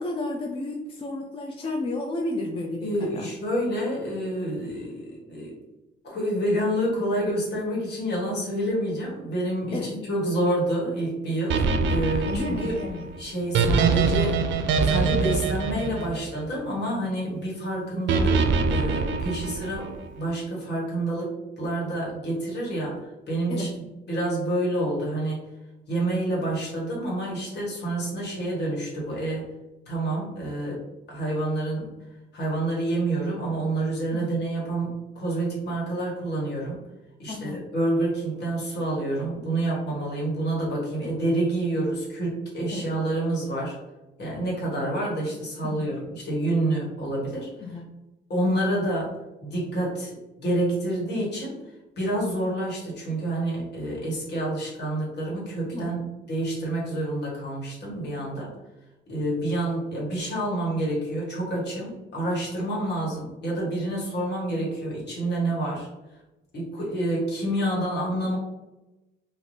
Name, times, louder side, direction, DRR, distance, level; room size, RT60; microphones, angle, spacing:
voice 1, 0.0-3.3 9.7-10.0 12.3-13.1 23.5-23.7 34.1-34.4 37.3-37.6 42.7-42.9 45.6-45.9 47.6-47.9 55.7-56.0, left 2 dB, 30° left, 1 dB, 0.4 m, -32 dB
voice 2, 2.8-5.6 6.0-12.7 13.2-14.4 14.8-25.4 25.9-29.5 29.9-30.8 31.1-31.9 32.3-36.8 37.2-43.8 44.2-47.5 48.3-51.6 52.0-58.5 59.1-65.9 66.5-68.4, right 1 dB, 60° left, -4 dB, 1.5 m, -28 dB
sound 1, 11.5-16.8 18.1-20.0, right 4 dB, 70° right, 0.4 m, -24 dB
2.6 x 2.5 x 3.2 m, 1.0 s
cardioid pair, 90°, 20 cm